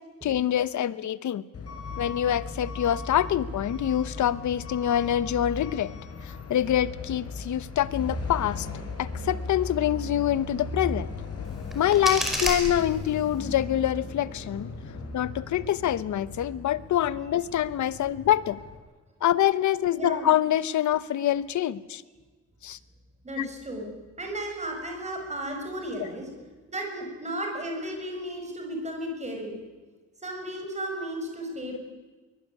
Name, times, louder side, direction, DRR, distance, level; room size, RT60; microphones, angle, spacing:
voice 1, 0.2-1.4 2.0-6.0 6.2-8.7 9.0-11.1 11.7-14.7 15.1-18.6 19.2-22.0 22.6-22.8 23.4-23.5 31.7-31.8, left 11 dB, 75° left, 16 dB, 1.0 m, -25 dB
Truck / Alarm, 1.5-18.8, left 3 dB, 55° left, 5.5 m, -37 dB
sound 1, 11.5-13.4, equal, ahead, 5.2 m, -32 dB
voice 2, 19.9-20.3 23.2-23.9 24.2-26.3 26.7-29.5 30.2-31.8, right 1 dB, 25° right, 2 dB, 6.4 m, -34 dB
23.5 x 21.0 x 9.8 m, 1.3 s
wide cardioid pair, 160°, 29 cm